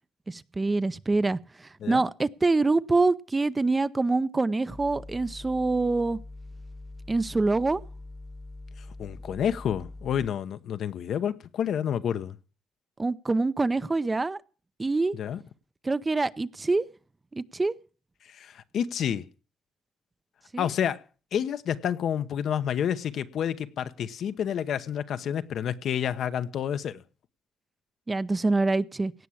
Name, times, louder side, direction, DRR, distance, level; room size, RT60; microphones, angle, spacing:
voice 1, 0.3-6.2 7.1-7.8 13.0-14.4 14.8-15.1 15.8-16.8 17.3-17.7 20.5-20.7 28.1-29.1, right 3 dB, 20° right, 0.6 m, -25 dB
sound 1, 4.7-10.3, left 2 dB, 20° left, 1.1 m, -43 dB
voice 2, 9.0-12.4 15.1-15.4 18.2-19.3 20.6-21.0 21.3-27.0, left 9 dB, 70° left, 0.9 m, -29 dB
17.5 x 6.1 x 8.4 m
cardioid pair, 90°, 0 cm